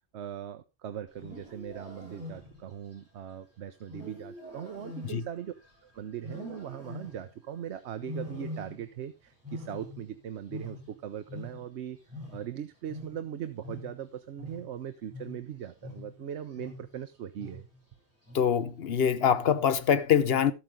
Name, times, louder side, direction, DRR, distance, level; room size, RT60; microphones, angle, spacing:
voice 1, 0.1-5.5 5.8-12.0 12.3-17.7, right 9 dB, 85° right, 1.0 m, -40 dB
Wild animals, 1.1-2.8 3.9-5.8 6.2-7.4 8.0-9.1 9.3-11.8 12.1-17.0 17.4-17.8 18.3-18.7 19.4-19.9, left 2 dB, 10° right, 7.0 m, -44 dB
voice 2, 18.3-20.5, left 8 dB, 65° left, 1.1 m, -24 dB
13.0 x 8.5 x 3.6 m
omnidirectional pair, 1.1 m